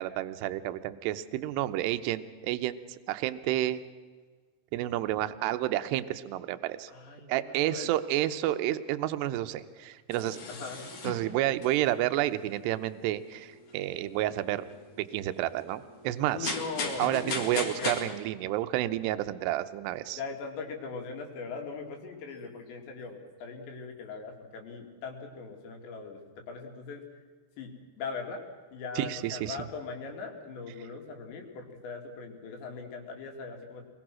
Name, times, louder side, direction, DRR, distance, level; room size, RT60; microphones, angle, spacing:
voice 1, 0.0-3.8 4.7-6.9 7.3-10.4 11.0-14.6 15.1-16.6 17.0-20.2 29.0-29.6, right 14 dB, 75° right, 10 dB, 2.8 m, -30 dB
voice 2, 6.9-7.9 10.2-10.9 16.3-18.2 20.1-27.0 27.6-28.4 28.7-33.9, left 4 dB, 70° left, 3 dB, 4.8 m, -40 dB
sound 1, 10.1-18.0, left 4 dB, 45° left, 3.2 m, -38 dB
25.0 x 21.5 x 6.2 m, 1.5 s
omnidirectional pair, 5.3 m